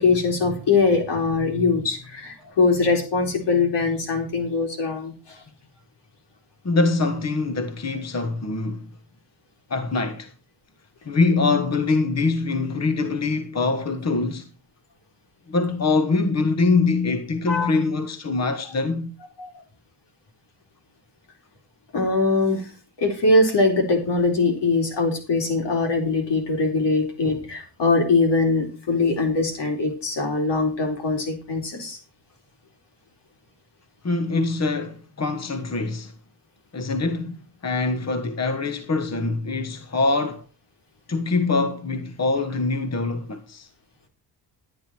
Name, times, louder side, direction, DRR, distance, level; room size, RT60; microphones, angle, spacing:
voice 1, 0.0-5.4 17.5-17.7 19.4-19.5 21.9-22.7 23.0-32.0, left 3 dB, 80° left, 4.1 m, -22 dB
voice 2, 6.6-8.9 9.7-10.3 11.0-14.5 15.5-19.1 34.0-36.1 36.7-40.4 41.1-43.7, left 3 dB, 40° left, 1.4 m, -24 dB
12.0 x 10.0 x 4.5 m
cardioid pair, 100°, 42 cm